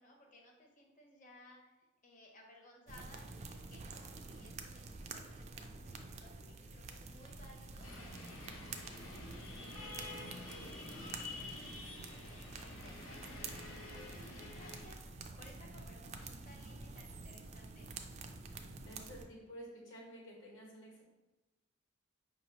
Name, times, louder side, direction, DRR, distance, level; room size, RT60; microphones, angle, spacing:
voice 1, 0.0-1.8 2.0-17.9, left 1 dB, 40° left, 0 dB, 0.8 m, -61 dB
sound 1, 2.9-19.3, right 3 dB, 35° right, 0.3 m, -49 dB
sound 2, 7.8-14.8, left 2 dB, 85° left, 0.8 m, -48 dB
voice 2, 18.8-21.0, equal, 65° left, -2 dB, 1.2 m, -51 dB
5.2 x 2.8 x 3.0 m, 1.1 s
head